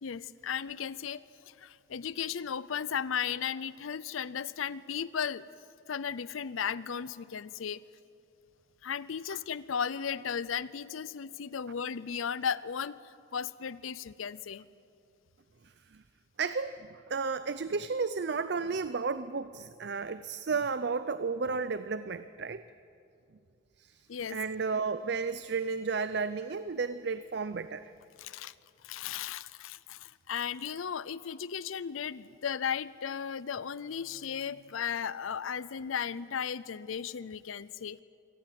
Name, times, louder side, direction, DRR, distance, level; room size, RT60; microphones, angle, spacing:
voice 1, 0.0-5.5 5.9-7.8 8.8-14.7 24.1-24.4 28.2-28.5 28.8-38.0, left 7 dB, 90° left, 18 dB, 0.5 m, -35 dB
voice 2, 15.6-16.0 16.4-22.6 23.8-27.9, right 4 dB, 55° right, 13 dB, 0.5 m, -33 dB
24.0 x 18.0 x 7.7 m, 2.5 s
head